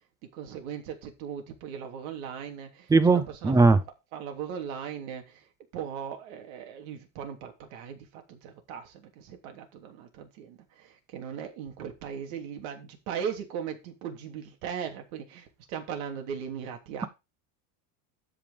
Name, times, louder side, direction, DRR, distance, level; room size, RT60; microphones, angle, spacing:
voice 1, 0.3-3.7 4.1-17.1, right 8 dB, 70° right, 3.3 m, -38 dB
voice 2, 2.9-3.8, right 3 dB, 10° right, 0.5 m, -19 dB
12.5 x 5.3 x 5.2 m
cardioid pair, 160°, 41 cm